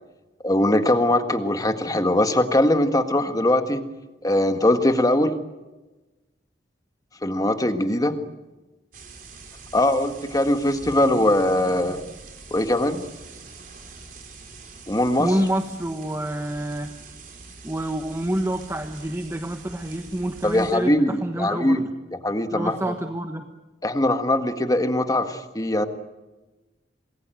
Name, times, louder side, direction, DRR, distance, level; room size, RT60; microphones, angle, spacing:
voice 1, 0.4-3.8 4.2-5.4 7.2-8.1 9.7-12.0 12.5-13.0 14.9-15.3 20.4-21.9 22.2-22.9 23.8-25.9, left 1 dB, 20° left, 7 dB, 1.7 m, -21 dB
sound 1, 8.9-20.8, right 4 dB, 50° right, 4.7 m, -44 dB
voice 2, 15.2-16.9 17.6-21.9 22.5-23.4, right 1 dB, 15° right, 6 dB, 1.2 m, -27 dB
27.5 x 20.5 x 9.1 m, 1.1 s
head